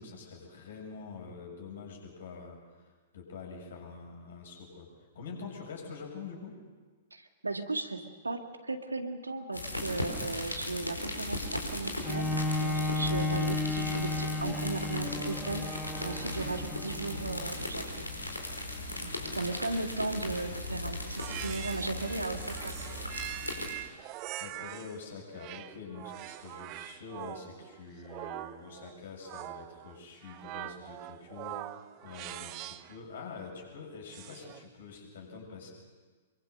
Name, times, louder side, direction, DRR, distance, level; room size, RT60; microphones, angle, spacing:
voice 1, 0.0-2.6 3.1-4.9 5.1-6.6 18.7-19.7 23.7-24.1 24.4-35.7, left 5 dB, 55° left, 1 dB, 7.3 m, -46 dB
voice 2, 7.1-18.1 19.0-22.8, right 3 dB, 80° right, 6 dB, 2.0 m, -36 dB
sound 1, 9.5-23.7, left 1 dB, 85° left, 4.7 m, -37 dB
Bowed string instrument, 12.0-17.7 18.3-18.4, left 2 dB, 5° left, 1.4 m, -33 dB
sound 2, 21.2-25.0 25.4-33.0 34.1-34.7, right 16 dB, 35° right, 0.9 m, -43 dB
25.5 x 23.5 x 6.7 m, 1.4 s
figure-of-eight pair, 105°, 0 cm